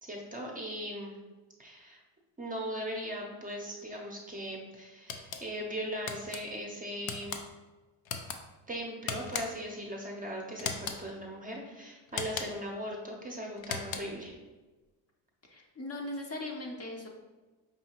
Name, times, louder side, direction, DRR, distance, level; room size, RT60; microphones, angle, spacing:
voice 1, 0.0-1.2 1.6-2.0 2.4-7.4 8.7-14.3, equal, 20° right, -1 dB, 0.6 m, -39 dB
sound 1, 5.1-5.4 6.1-6.4 7.0-7.4 8.0-8.4 9.1-9.7 10.6-11.0 12.1-12.7 13.6-14.2, left 6 dB, 75° left, 0.6 m, -37 dB
voice 2, 15.4-17.1, left 1 dB, 30° left, 0 dB, 0.6 m, -39 dB
5.4 x 2.7 x 2.9 m, 1.2 s
cardioid pair, 115°, 46 cm